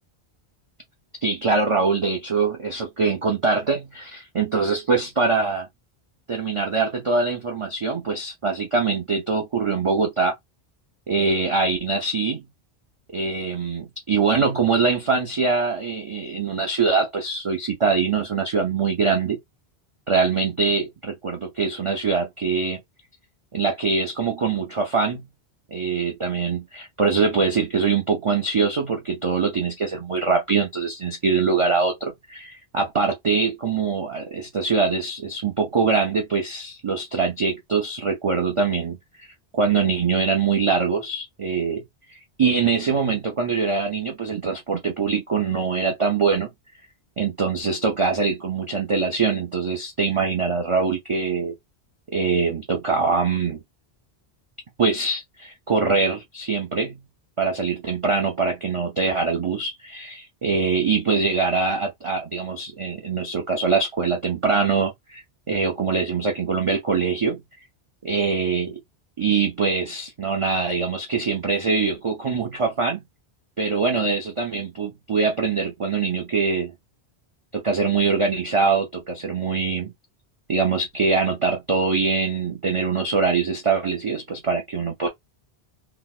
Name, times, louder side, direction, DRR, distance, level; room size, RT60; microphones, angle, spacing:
voice 1, 1.2-5.7 6.3-10.3 11.1-12.5 13.1-19.4 20.1-22.8 23.5-25.3 25.7-39.3 39.5-41.8 42.1-46.5 47.2-51.5 52.1-53.6 54.8-57.0 57.4-67.4 68.0-68.8 69.2-73.0 73.6-76.7 77.5-79.9 80.5-85.1, right 4 dB, 40° right, 0.5 m, -23 dB
4.0 x 2.0 x 2.4 m
omnidirectional pair, 1.1 m